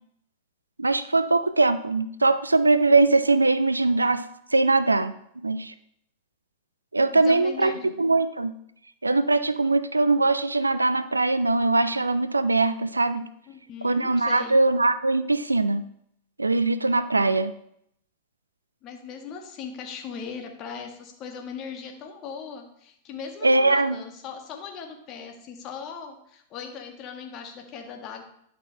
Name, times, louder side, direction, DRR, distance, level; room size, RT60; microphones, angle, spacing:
voice 1, 0.8-4.2 4.5-5.1 5.4-5.7 6.9-8.5 9.0-13.3 13.8-15.8 16.4-17.5 23.4-24.0, right 3 dB, 80° right, 13 dB, 0.5 m, -21 dB
voice 2, 7.1-7.9 13.5-14.6 18.8-28.2, left 6 dB, 35° left, 3 dB, 1.6 m, -39 dB
11.0 x 5.5 x 4.4 m, 0.72 s
figure-of-eight pair, 95°, 0 cm